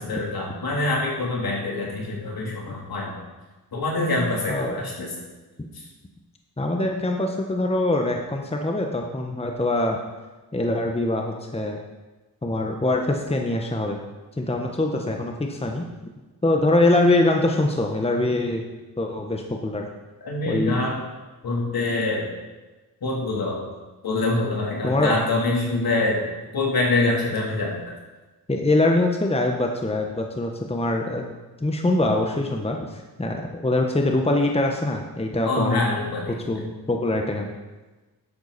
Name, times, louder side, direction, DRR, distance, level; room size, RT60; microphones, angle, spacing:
voice 1, 0.0-3.1 3.7-5.1 20.2-21.0 21.4-22.3 23.0-23.6 24.0-26.2 26.5-27.8 35.4-36.4, left 2 dB, 65° left, -3 dB, 3.5 m, -25 dB
voice 2, 4.5-4.9 6.6-10.0 10.5-11.8 12.4-14.0 14.4-15.9 16.4-18.6 19.0-19.9 20.4-20.8 24.8-25.1 28.5-31.2 31.6-35.8 36.5-37.5, left 2 dB, 15° left, 2 dB, 1.2 m, -23 dB
11.0 x 8.1 x 4.2 m, 1.2 s
cardioid pair, 55°, 39 cm